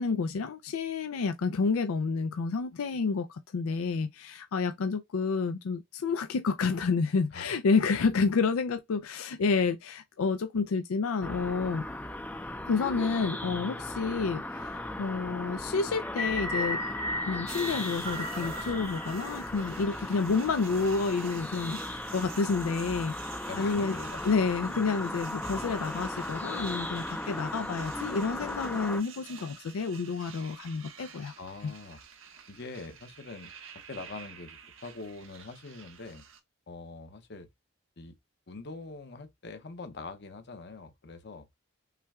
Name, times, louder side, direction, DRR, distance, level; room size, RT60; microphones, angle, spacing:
voice 1, 0.0-11.8 12.7-16.8 17.2-23.1 23.6-23.9 24.2-31.3, left 4 dB, 90° left, 0.4 m, -29 dB
sound 1, 11.2-29.0, left 1 dB, 10° left, 0.5 m, -37 dB
sound 2, 16.0-20.4, left 1 dB, 35° right, 0.9 m, -36 dB
sound 3, 17.5-36.4, right 7 dB, 65° right, 0.9 m, -50 dB
voice 2, 23.5-24.3 31.4-32.0 32.5-33.5 33.9-36.2 36.7-37.5 38.0-38.1 38.5-41.5, left 3 dB, 55° left, 0.8 m, -43 dB
5.7 x 2.2 x 3.5 m
head